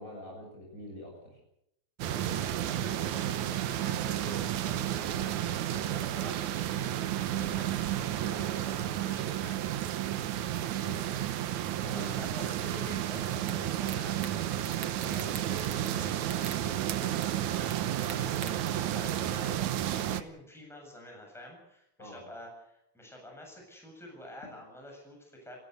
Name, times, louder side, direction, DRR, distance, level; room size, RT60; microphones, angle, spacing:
voice 1, 0.0-1.4 7.3-7.5 10.6-11.1 11.8-12.1 22.0-22.2, left 1 dB, 25° left, -1 dB, 7.3 m, -45 dB
sound 1, 2.0-20.2, right 12 dB, 85° right, 2.4 m, -32 dB
voice 2, 2.1-9.6 11.9-25.6, left 1 dB, ahead, 0 dB, 7.7 m, -48 dB
sound 2, 13.5-13.6 13.9-14.3 14.6-16.0 16.2-16.6 17.2-17.3 17.7-18.7, right 8 dB, 55° right, 2.4 m, -43 dB
29.0 x 14.0 x 8.1 m, 0.77 s
omnidirectional pair, 3.3 m